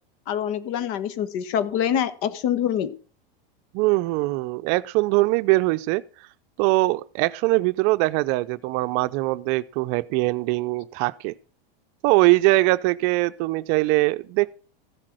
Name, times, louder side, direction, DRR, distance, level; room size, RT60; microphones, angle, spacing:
voice 1, 0.3-2.9, left 9 dB, 50° left, 1.4 m, -25 dB
voice 2, 3.7-6.0 6.6-11.3 12.0-14.5, right 21 dB, 50° right, 0.6 m, -22 dB
14.5 x 7.5 x 6.1 m
hypercardioid pair, 100°, 29 cm